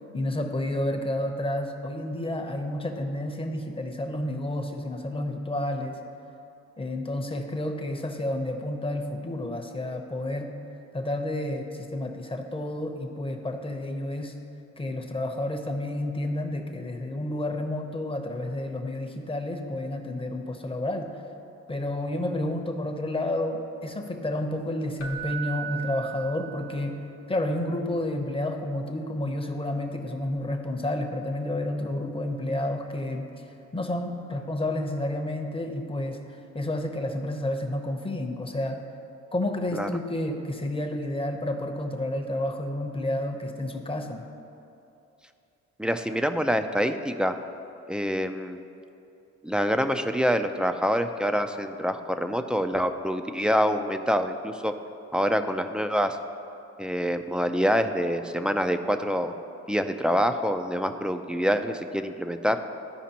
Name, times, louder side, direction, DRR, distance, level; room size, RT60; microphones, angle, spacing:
voice 1, 0.1-6.0 6.8-10.5 10.9-14.3 14.8-21.1 21.7-27.0 27.3-33.3 33.7-38.8 39.3-44.2, left 1 dB, 20° left, 4 dB, 0.7 m, -30 dB
Keyboard (musical), 25.0-27.0 30.2-30.4, right 8 dB, 70° left, 0.8 m, -37 dB
voice 2, 45.8-47.3 47.9-48.6 49.4-54.7 55.1-56.2 56.8-59.3 59.7-62.6, equal, 5° right, 8 dB, 0.3 m, -26 dB
13.5 x 5.0 x 2.9 m, 2.7 s
cardioid pair, 90°, 30 cm